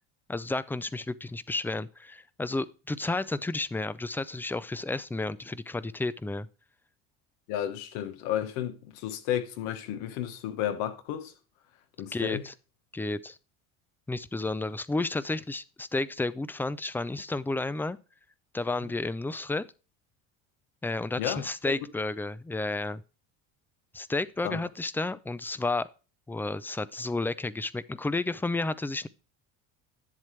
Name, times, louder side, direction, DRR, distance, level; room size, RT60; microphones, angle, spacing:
voice 1, 0.3-6.5 12.1-12.5 12.9-13.4 14.1-18.0 18.5-19.7 20.8-23.0 23.9-25.9 26.3-29.1, left 2 dB, 5° left, 0.3 m, -31 dB
voice 2, 7.5-11.3 12.0-12.4 21.2-21.7 24.4-24.6, left 11 dB, 80° left, 1.3 m, -32 dB
10.5 x 7.6 x 3.2 m
supercardioid pair, 100°, 38 cm